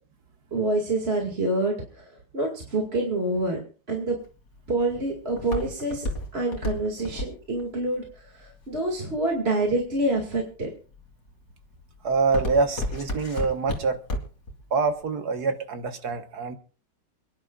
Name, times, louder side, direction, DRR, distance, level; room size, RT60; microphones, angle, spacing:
voice 1, 0.5-3.6 3.9-4.2 4.7-6.0 6.3-10.7, right 2 dB, 35° right, 2.5 m, -27 dB
Walk footsteps, 4.2-9.4 10.0-10.4 10.9-11.3 11.6-14.5 14.8-14.9, left 1 dB, 50° left, 3.0 m, -32 dB
voice 2, 12.0-14.0 14.7-16.6, right 4 dB, 60° right, 1.8 m, -25 dB
28.0 x 10.5 x 2.5 m
omnidirectional pair, 1.9 m